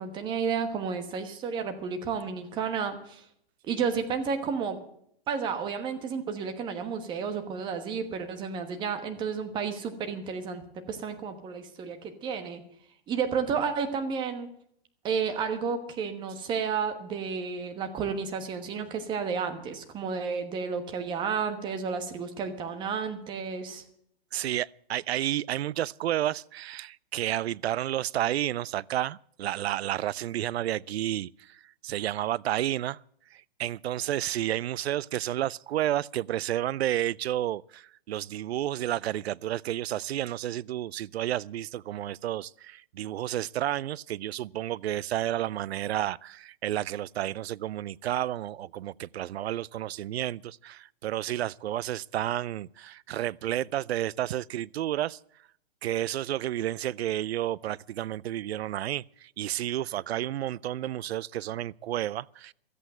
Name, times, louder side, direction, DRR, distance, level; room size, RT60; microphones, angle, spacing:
voice 1, 0.0-3.2 3.6-4.8 5.3-12.6 13.1-14.5 15.0-23.8 24.4-24.5, right 6 dB, 15° right, 1.2 m, -32 dB
voice 2, 24.3-33.0 33.3-55.2 55.8-62.5, right 13 dB, 80° right, 0.5 m, -31 dB
13.5 x 8.3 x 8.9 m
hypercardioid pair, 160°, 31 cm